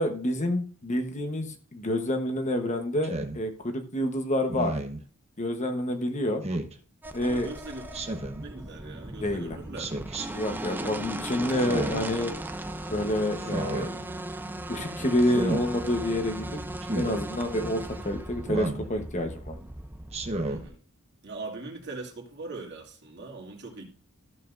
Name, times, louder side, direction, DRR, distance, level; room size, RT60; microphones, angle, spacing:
voice 1, 0.0-4.8 5.4-6.4 7.1-7.5 9.2-9.6 10.3-12.3 12.9-14.1 14.7-16.6 16.9-19.5, left 1 dB, 30° left, 1.1 m, -28 dB
Speech synthesizer, 3.0-3.4 4.5-5.0 6.4-6.7 7.9-8.4 9.8-10.3 11.5-12.1 13.4-13.9 15.2-15.6 16.8-17.1 18.5-18.9 20.1-20.6, right 2 dB, 30° right, 1.0 m, -32 dB
sound 1, 7.0-20.7, right 1 dB, 10° right, 0.6 m, -37 dB
voice 2, 7.2-8.1 8.4-10.1 10.7-11.1 20.4-20.8 21.2-23.8, right 3 dB, 50° right, 2.5 m, -41 dB
14.0 x 6.8 x 2.6 m
head